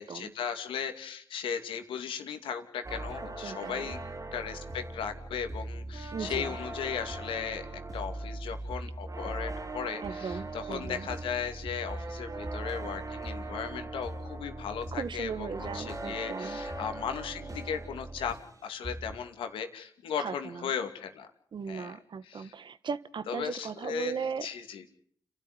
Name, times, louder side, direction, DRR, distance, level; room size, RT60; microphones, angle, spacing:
voice 1, 0.0-4.0 4.3-7.7 7.9-18.4 18.6-21.3 21.7-22.0 22.2-22.5 23.3-24.9, left 7 dB, 85° left, 7 dB, 2.5 m, -37 dB
sound 1, 2.8-18.6 18.8-19.3, right 2 dB, 40° right, 3.1 m, -39 dB
voice 2, 3.2-3.9 6.1-6.5 10.0-11.1 14.9-16.6 20.2-20.6 21.5-24.5, right 6 dB, 65° right, 13 dB, 1.5 m, -37 dB
30.0 x 12.5 x 9.7 m, 0.63 s
supercardioid pair, 45°, 9 cm